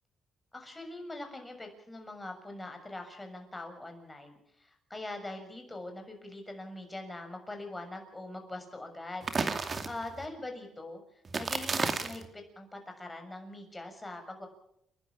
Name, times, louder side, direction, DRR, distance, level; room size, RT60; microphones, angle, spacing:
voice 1, 0.5-9.3 9.8-11.0 11.4-14.5, left 2 dB, 15° left, 5 dB, 6.6 m, -42 dB
sound 1, 9.2-10.3 11.3-12.3, right 4 dB, 40° right, 2.5 m, -32 dB
30.0 x 11.5 x 8.6 m, 0.74 s
cardioid pair, 90°, 0 cm